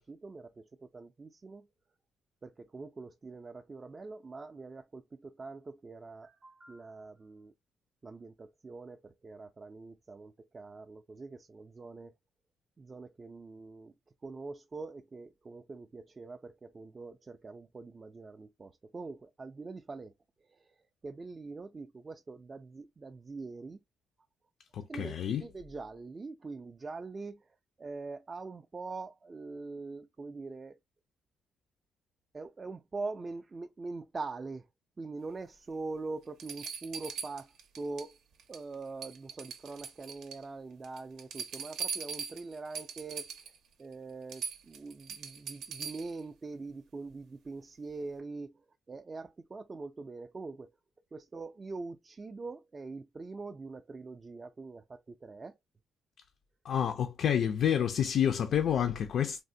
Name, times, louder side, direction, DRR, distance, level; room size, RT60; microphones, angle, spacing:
voice 1, 0.0-1.7 2.4-7.5 8.0-12.1 12.8-13.9 14.2-20.1 20.4-23.8 24.9-30.8 32.3-34.7 35.0-38.2 38.5-43.3 43.8-50.7 51.1-55.6, right 3 dB, 30° right, 0.3 m, -43 dB
voice 2, 24.7-25.4 56.6-59.4, left 9 dB, 65° left, 0.3 m, -29 dB
sound 1, 35.7-35.8 36.4-38.1 38.4-38.7 39.0-40.4 40.8-43.6 43.9-44.0 44.3-46.2 47.9-48.0, right 6 dB, 80° right, 0.6 m, -41 dB
3.3 x 2.1 x 2.6 m
cardioid pair, 90°, 0 cm